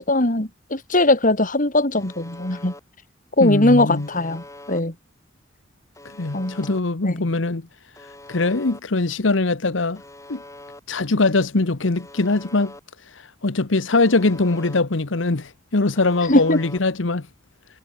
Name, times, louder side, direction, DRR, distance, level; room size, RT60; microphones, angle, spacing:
voice 1, 0.0-2.7 3.4-4.9 6.3-6.6 7.0-7.2 16.3-16.6, left 2 dB, 45° left, 3.0 m, -20 dB
Alarm, 2.0-2.8 4.0-4.8 6.0-6.8 8.0-8.8 10.0-10.8 12.0-12.8 14.0-14.8 16.0-16.8, left 2 dB, 15° left, 6.7 m, -43 dB
voice 2, 3.4-4.1 6.2-7.6 8.3-10.0 10.3-10.4 10.9-12.7 13.1-17.3, left 3 dB, 75° left, 1.1 m, -22 dB
head